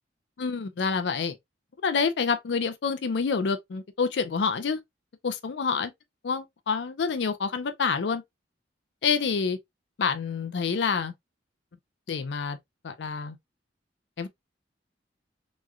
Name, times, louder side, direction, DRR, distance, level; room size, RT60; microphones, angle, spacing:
voice 1, 0.4-1.4 1.8-4.8 5.2-5.9 6.2-8.2 9.0-9.6 10.0-11.1 12.1-12.6 12.8-13.4 14.2-14.3, left 5 dB, 70° left, 0.4 m, -27 dB
3.0 x 2.4 x 2.3 m
head